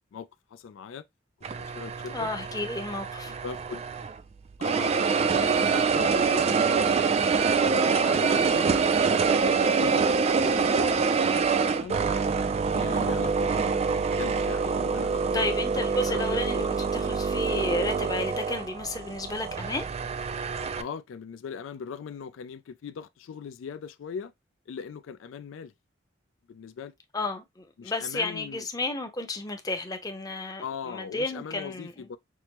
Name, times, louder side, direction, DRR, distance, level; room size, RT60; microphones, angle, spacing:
voice 1, 0.1-1.0 1.5-2.3 3.3-3.9 4.6-7.0 7.6-8.8 9.4-12.0 12.7-15.5 16.1-16.7 19.2-19.4 20.8-24.3 24.7-25.7 26.5-26.9 27.8-28.7 30.6-32.2, left 6 dB, 85° left, 0.3 m, -40 dB
sound 1, 1.4-4.2 4.6-20.8, right 5 dB, 35° right, 0.3 m, -25 dB
voice 2, 2.1-3.3 15.3-16.6 16.9-19.9 27.1-32.1, left 2 dB, 20° left, 0.7 m, -32 dB
6.0 x 2.1 x 2.9 m
head